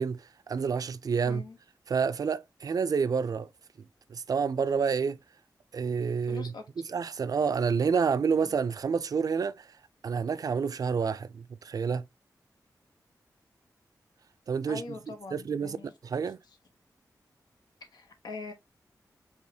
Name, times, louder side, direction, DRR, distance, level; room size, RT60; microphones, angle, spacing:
voice 1, 0.0-1.4 1.9-3.5 4.1-5.2 5.7-6.5 6.9-9.7 10.0-12.0 14.5-14.8 15.3-15.8 16.0-16.4, right 6 dB, 60° right, 0.4 m, -28 dB
voice 2, 1.2-1.6 6.3-6.9 8.4-8.6 14.7-15.9 16.5-16.6 17.8-18.5, left 4 dB, 85° left, 0.8 m, -43 dB
4.8 x 2.9 x 2.7 m
wide cardioid pair, 95°, 7 cm